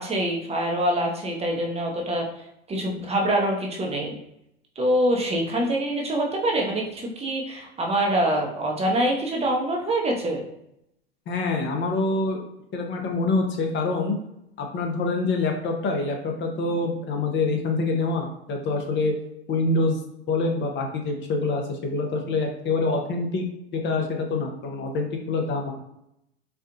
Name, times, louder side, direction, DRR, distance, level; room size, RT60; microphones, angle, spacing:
voice 1, 0.0-2.2 2.7-4.1 4.8-10.4, right 1 dB, 20° right, 0 dB, 0.8 m, -25 dB
voice 2, 11.3-12.4 12.7-14.2 14.6-19.2 19.5-20.0 20.3-23.4 23.7-25.7, left 3 dB, 35° left, 3 dB, 0.8 m, -25 dB
4.6 x 2.4 x 2.6 m, 0.80 s
hypercardioid pair, 100°, 30 cm